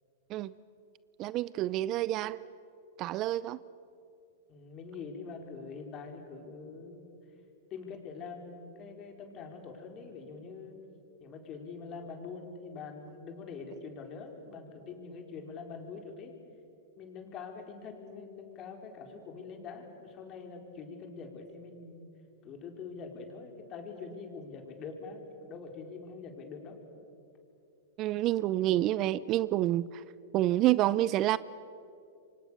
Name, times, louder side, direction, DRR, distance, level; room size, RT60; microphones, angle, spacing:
voice 1, 1.2-2.5 3.0-3.6 28.0-30.0 30.3-31.4, right 15 dB, 40° right, 19 dB, 0.5 m, -28 dB
voice 2, 4.5-7.1 7.7-10.8 11.2-16.3 17.0-22.1 22.4-26.8, left 5 dB, 35° left, 3 dB, 4.3 m, -44 dB
28.0 x 24.5 x 6.9 m, 2.7 s
hypercardioid pair, 115°, 0 cm